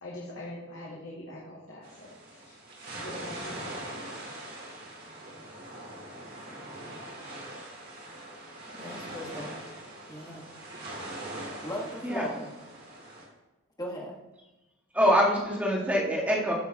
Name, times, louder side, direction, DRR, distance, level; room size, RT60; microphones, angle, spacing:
voice 1, 0.0-2.6 2.9-3.8, left 1 dB, 70° left, -6 dB, 2.2 m, -43 dB
sound 1, 1.8-13.3, right 1 dB, 45° right, 2.5 m, -42 dB
voice 2, 8.7-9.6 10.1-10.4 11.6-12.5 13.8-14.1, equal, 15° left, -2 dB, 1.5 m, -37 dB
voice 3, 14.9-16.5, equal, 5° right, -4 dB, 1.9 m, -24 dB
14.5 x 6.8 x 3.0 m, 1.1 s
head